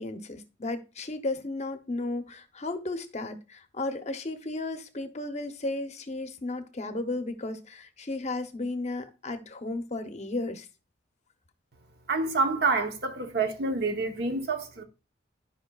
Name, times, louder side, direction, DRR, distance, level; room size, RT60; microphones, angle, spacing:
voice 1, 0.0-10.7, left 2 dB, 35° left, 0.7 m, -34 dB
voice 2, 12.1-14.8, right 3 dB, 55° right, 0.9 m, -27 dB
12.5 x 5.2 x 2.3 m
head